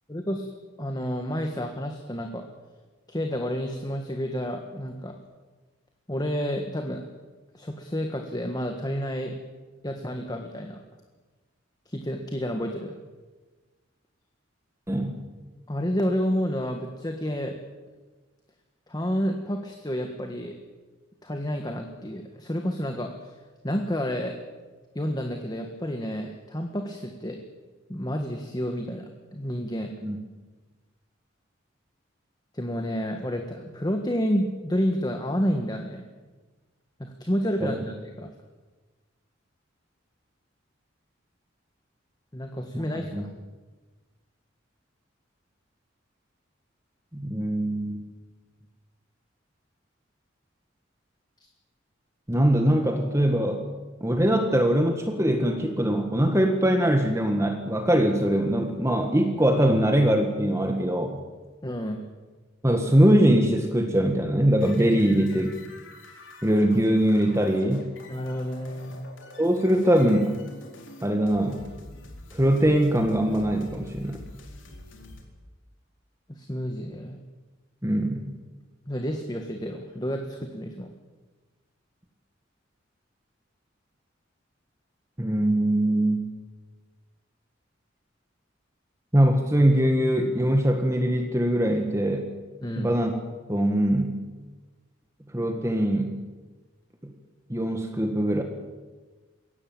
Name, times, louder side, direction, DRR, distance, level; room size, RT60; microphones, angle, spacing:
voice 1, 0.1-0.5 0.8-2.4 3.1-5.2 6.1-7.1 7.5-9.4 9.8-10.8 11.8-12.9 15.7-17.6 18.9-20.6 21.2-23.3 23.6-24.4 24.9-27.4 27.9-29.9 32.5-36.0 37.0-38.3 42.3-43.2 61.6-62.0 68.1-69.0 76.3-77.2 78.9-80.9 92.6-92.9, equal, 20° left, 4 dB, 1.6 m, -30 dB
voice 2, 14.9-15.2 30.0-30.2 37.6-37.8 42.7-42.8 43.1-43.2 47.1-48.0 52.3-53.6 54.0-61.2 62.6-65.6 66.4-67.9 69.4-70.4 71.0-71.6 72.3-74.2 77.8-78.3 85.2-86.3 89.1-92.3 92.8-93.1 93.5-94.2 95.3-96.2 97.0-97.1 97.5-98.4, right 1 dB, 15° right, 4 dB, 1.6 m, -22 dB
sound 1, 64.6-75.2, left 2 dB, 75° left, 4.1 m, -46 dB
22.0 x 17.0 x 9.1 m, 1.3 s
head